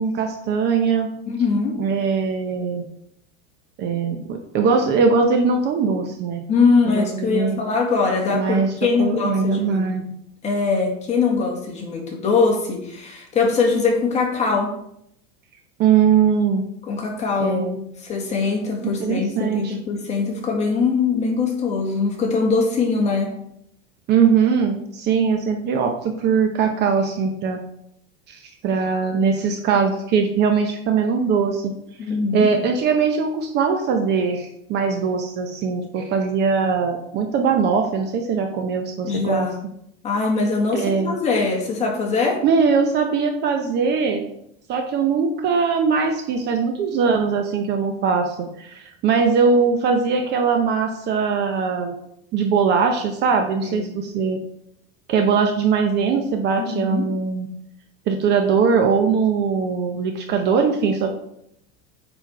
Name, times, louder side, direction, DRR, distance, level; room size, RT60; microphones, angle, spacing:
voice 1, 0.0-1.1 1.8-2.8 3.8-6.4 6.8-7.6 8.3-8.7 9.0-10.0 15.8-16.6 17.4-17.8 18.8-19.8 24.1-27.6 28.3-31.7 32.3-39.5 40.7-41.1 42.4-44.2 44.7-52.0 52.3-54.4 55.1-57.5 58.1-61.1, right 5 dB, 35° right, 4 dB, 0.8 m, -21 dB
voice 2, 1.3-1.8 6.5-9.8 10.4-14.7 16.9-17.7 18.0-23.3 32.0-32.5 39.0-39.6 40.0-42.4 53.6-53.8 56.6-57.1, left 4 dB, 20° left, 0 dB, 2.0 m, -22 dB
9.1 x 4.4 x 4.6 m, 0.74 s
supercardioid pair, 150°, 31 cm